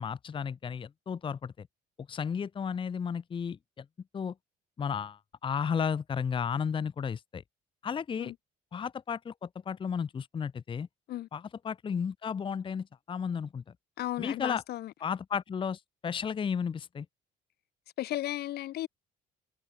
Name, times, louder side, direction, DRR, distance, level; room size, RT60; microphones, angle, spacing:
voice 1, 0.0-1.7 2.1-3.8 4.1-4.3 4.8-7.4 7.8-8.3 8.7-10.9 11.3-13.6 14.2-14.6 15.0-17.1, left 7 dB, 30° left, 0.8 m, -33 dB
voice 2, 14.0-14.9 18.0-18.9, left 14 dB, 70° left, 2.0 m, -34 dB
cardioid pair, 110°, 17 cm